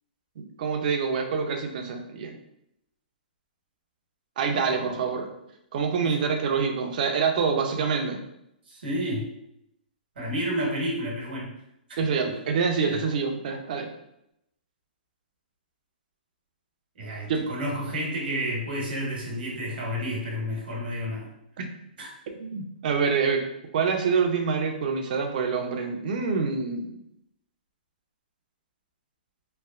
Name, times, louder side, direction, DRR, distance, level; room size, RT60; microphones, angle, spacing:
voice 1, 0.4-2.3 4.4-5.3 5.7-8.2 12.0-13.9 17.3-17.5 21.6-21.7 22.4-23.4 23.7-26.9, right 5 dB, 55° right, 4 dB, 0.5 m, -26 dB
voice 2, 4.5-5.1 6.0-6.3 8.7-9.3 10.2-11.5 12.2-12.3 12.8-13.0 17.0-21.3 22.0-22.1, equal, 75° right, -2 dB, 1.1 m, -31 dB
3.1 x 2.0 x 2.3 m, 0.80 s
hypercardioid pair, 140°, 5 cm